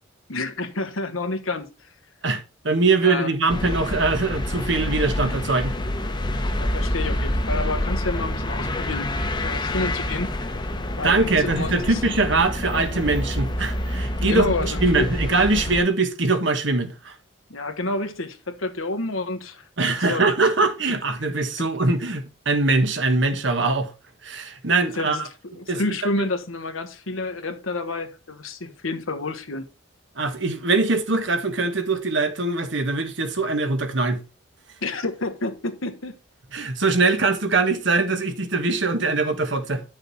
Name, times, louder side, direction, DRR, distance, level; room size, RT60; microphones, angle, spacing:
voice 1, 0.3-1.7 3.0-3.3 6.6-9.1 9.4-10.5 11.0-12.0 14.2-15.1 17.5-19.6 20.1-20.2 21.6-21.7 25.0-25.3 25.6-29.6 34.8-36.2, left 2 dB, 85° left, 1.4 m, -29 dB
voice 2, 2.2-5.8 11.0-17.2 19.8-23.9 24.2-25.3 25.7-25.8 26.2-26.3 30.2-34.2 36.5-39.8, right 3 dB, 60° right, 1.4 m, -22 dB
sound 1, 3.5-15.8, left 1 dB, 20° left, 1.0 m, -27 dB
9.9 x 6.4 x 4.2 m
head